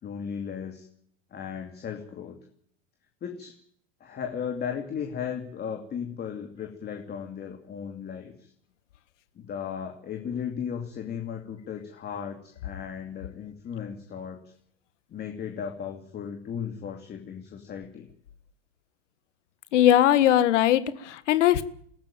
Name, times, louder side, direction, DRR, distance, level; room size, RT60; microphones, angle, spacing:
voice 1, 0.0-0.9 1.3-2.4 3.2-3.6 4.0-8.5 9.4-14.4 15.1-18.1, left 7 dB, 25° left, 4 dB, 2.7 m, -36 dB
voice 2, 19.7-21.6, left 12 dB, 85° left, 14 dB, 1.7 m, -20 dB
23.0 x 14.0 x 9.1 m, 0.65 s
supercardioid pair, 135°, 36 cm